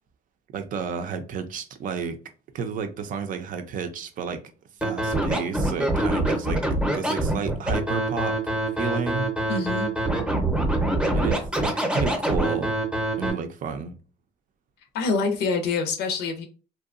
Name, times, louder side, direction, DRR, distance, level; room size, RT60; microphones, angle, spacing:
voice 1, 0.5-2.2 2.5-4.4 4.8-6.6 6.9-8.4 8.8-9.3 11.1-12.8 13.2-13.9, right 6 dB, 55° right, 0.5 m, -31 dB
Scratching (performance technique), 4.8-13.3, right 1 dB, 5° right, 0.7 m, -24 dB
voice 2, 9.5-9.9 14.9-16.4, left 4 dB, 80° left, 0.5 m, -25 dB
2.7 x 2.2 x 2.4 m
cardioid pair, 110°, 17 cm